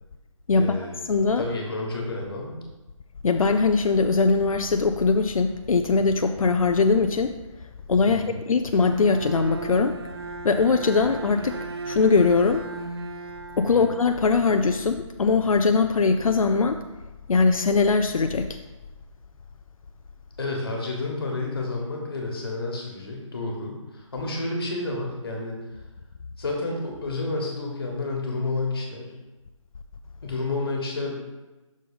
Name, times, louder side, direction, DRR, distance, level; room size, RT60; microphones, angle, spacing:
voice 1, 0.5-1.0 1.4-2.6 8.1-8.4 13.7-13.9 20.4-25.6 26.4-29.1 30.2-31.2, left 2 dB, 45° left, 0 dB, 1.6 m, -30 dB
voice 2, 1.1-1.4 3.2-7.4 7.9-10.0 10.4-11.6 11.9-12.6 13.6-16.8 17.3-18.6, left 4 dB, 85° left, 7 dB, 0.5 m, -21 dB
Bowed string instrument, 8.8-14.7, right 4 dB, 50° right, 0.6 m, -37 dB
6.4 x 3.9 x 5.1 m, 1.1 s
figure-of-eight pair, 165°, 17 cm